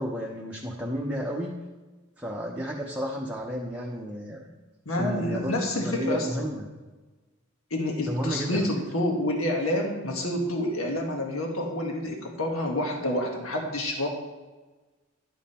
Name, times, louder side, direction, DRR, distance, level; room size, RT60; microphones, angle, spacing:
voice 1, 0.0-1.5 2.2-4.5 5.0-6.7 8.0-8.7, equal, 5° right, -3 dB, 0.8 m, -32 dB
voice 2, 4.8-6.5 7.7-14.1, left 1 dB, 75° left, 1 dB, 1.5 m, -28 dB
11.5 x 7.3 x 4.3 m, 1.2 s
head